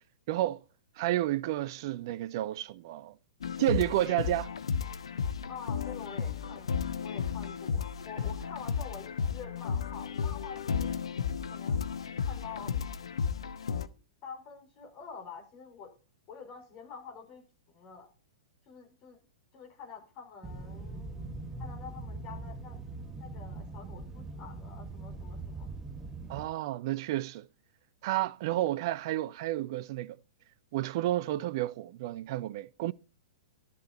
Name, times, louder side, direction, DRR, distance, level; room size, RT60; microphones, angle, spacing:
voice 1, 0.3-0.6 1.0-3.1 3.6-4.5 26.3-27.5 28.0-30.2 30.7-32.9, right 14 dB, 45° right, 0.5 m, -31 dB
sound 1, 3.4-13.9, left 6 dB, 65° left, 0.9 m, -33 dB
voice 2, 5.5-6.7 7.0-11.0 11.5-12.9 14.2-15.9 16.3-18.1 18.6-19.2 19.5-21.2 21.6-22.8 23.2-25.7 28.5-28.6, left 6 dB, 35° left, 5.0 m, -47 dB
sound 2, 20.4-26.5, right 3 dB, 15° right, 1.3 m, -42 dB
12.5 x 11.0 x 4.2 m
figure-of-eight pair, 105°, 3 cm